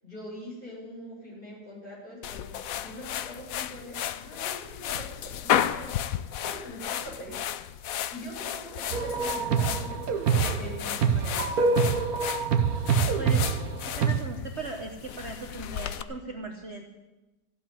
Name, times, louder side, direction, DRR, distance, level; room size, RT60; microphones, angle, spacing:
voice 1, 0.0-6.0 6.2-7.4 8.1-10.1 10.4-11.9, equal, 30° left, -5 dB, 7.5 m, -43 dB
sound 1, 2.2-16.0, left 10 dB, 65° left, 0.9 m, -33 dB
sound 2, 8.9-14.2, right 5 dB, 60° right, 1.4 m, -25 dB
voice 2, 13.2-16.8, right 3 dB, 45° right, 3 dB, 1.3 m, -38 dB
15.0 x 8.4 x 9.7 m, 1.1 s
omnidirectional pair, 1.9 m